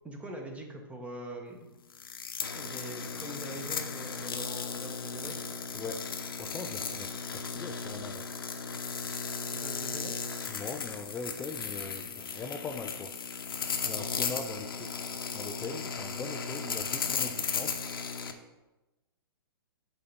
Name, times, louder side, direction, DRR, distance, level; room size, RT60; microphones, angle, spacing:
voice 1, 0.0-1.6 2.5-5.4 9.5-10.2, right 1 dB, 10° right, 2 dB, 1.2 m, -43 dB
sound 1, 1.9-18.3, left 5 dB, 65° left, 0.9 m, -36 dB
voice 2, 5.7-6.1 6.4-8.3 10.5-13.1 13.8-14.9 15.3-17.8, left 4 dB, 10° left, 4 dB, 0.4 m, -41 dB
8.4 x 3.9 x 5.8 m, 1.1 s
figure-of-eight pair, 120°, 13 cm